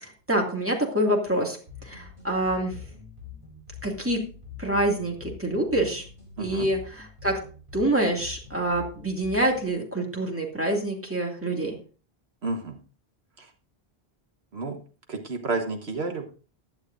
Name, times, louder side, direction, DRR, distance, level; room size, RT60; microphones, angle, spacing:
voice 1, 0.0-1.6 1.8-2.8 3.8-4.2 4.6-6.0 6.4-7.4 7.7-11.8, right 1 dB, 10° right, 0 dB, 2.3 m, -26 dB
sound 1, 1.7-9.7, left 7 dB, 50° right, 3.7 m, -44 dB
voice 2, 6.4-6.7 12.4-12.8 13.4-13.5 14.5-14.8 15.1-16.3, right 3 dB, 75° right, 4 dB, 1.6 m, -30 dB
15.5 x 11.0 x 2.6 m, 0.38 s
omnidirectional pair, 1.1 m